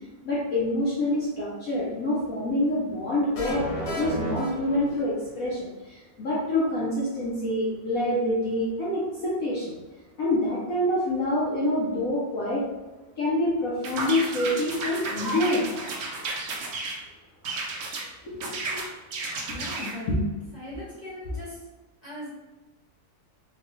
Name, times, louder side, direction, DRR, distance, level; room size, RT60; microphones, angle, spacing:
voice 1, 0.2-9.8 10.2-12.6 13.2-15.7 18.2-18.8 20.1-20.2, left 1 dB, 60° left, -6 dB, 1.0 m, -26 dB
sound 1, 3.3-5.3, right 1 dB, 90° left, 1.7 m, -33 dB
sound 2, 13.8-17.0 17.4-18.1 18.4-20.0, right 2 dB, 60° right, 0.9 m, -32 dB
voice 2, 19.5-20.1 20.5-21.6 22.0-22.3, left 1 dB, 30° right, -9 dB, 0.9 m, -39 dB
3.9 x 2.2 x 3.0 m, 1.2 s
omnidirectional pair, 2.0 m